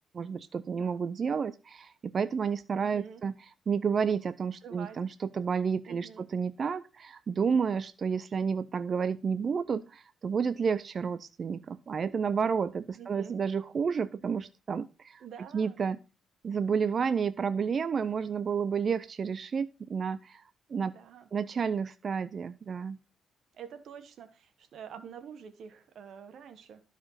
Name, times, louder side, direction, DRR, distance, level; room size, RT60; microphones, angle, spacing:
voice 1, 0.1-3.3 3.7-15.2 15.5-16.0 16.4-20.4 20.7-20.9 21.3-23.0, right 6 dB, 45° right, 0.4 m, -30 dB
voice 2, 0.7-1.0 2.8-3.2 4.6-5.0 5.8-6.3 12.9-13.4 15.2-15.8 20.9-21.3 23.5-26.8, right 7 dB, 65° right, 1.1 m, -47 dB
12.5 x 4.9 x 5.6 m
cardioid pair, 90°, 0 cm